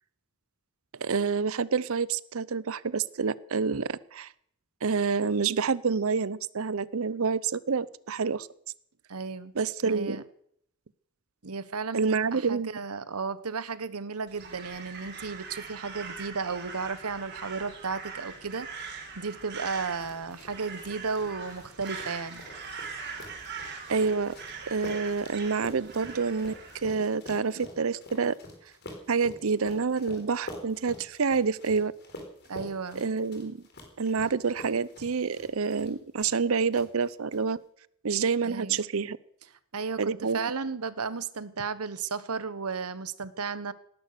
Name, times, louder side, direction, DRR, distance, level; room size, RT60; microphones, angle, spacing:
voice 1, 0.9-4.3 4.8-8.5 9.5-10.2 11.9-12.7 23.9-24.3 24.7-28.4 29.1-31.9 33.0-33.6 34.0-37.6 38.0-39.2 40.0-40.4, right 5 dB, 65° right, 19 dB, 0.6 m, -28 dB
voice 2, 9.1-9.5 9.8-10.2 11.4-22.5 32.5-33.0 38.4-38.8 39.7-43.7, right 5 dB, 85° right, 15 dB, 1.1 m, -34 dB
Crow, 14.3-26.9, right 5 dB, 50° right, 4.0 m, -42 dB
sound 1, 19.7-36.5 36.7-37.4, left 1 dB, 50° left, 4.2 m, -46 dB
19.0 x 11.0 x 6.6 m, 0.69 s
head